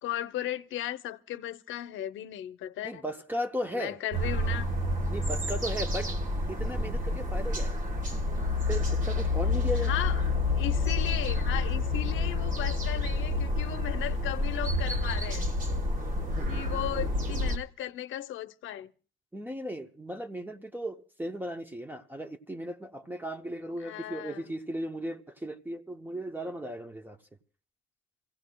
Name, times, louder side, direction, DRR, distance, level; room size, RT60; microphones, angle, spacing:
voice 1, 0.0-3.1 3.7-4.7 9.8-10.2 10.6-15.5 16.5-18.9 23.8-24.4, left 12 dB, 80° left, 0.7 m, -36 dB
voice 2, 2.8-4.0 5.1-6.1 6.5-7.8 8.7-9.9 16.4-16.5 19.3-27.2, equal, 10° right, 0.8 m, -36 dB
sound 1, 4.1-17.6, left 2 dB, 40° right, 1.3 m, -29 dB
28.0 x 16.5 x 2.2 m
cardioid pair, 90°, 20 cm